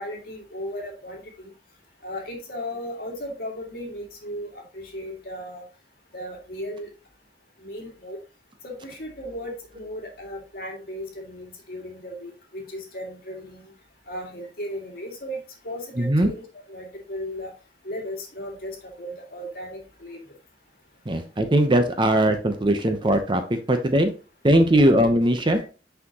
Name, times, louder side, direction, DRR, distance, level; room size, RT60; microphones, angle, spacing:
voice 1, 0.0-1.5 2.0-5.7 6.1-6.9 7.6-8.2 8.6-13.7 14.1-15.4 15.6-16.4 16.7-17.5 17.8-20.2 25.6-25.7, equal, 55° left, 0 dB, 2.1 m, -36 dB
voice 2, 16.0-16.3 21.1-24.1 24.4-25.6, right 1 dB, 25° right, 7 dB, 0.8 m, -20 dB
6.1 x 5.7 x 2.9 m, 0.33 s
head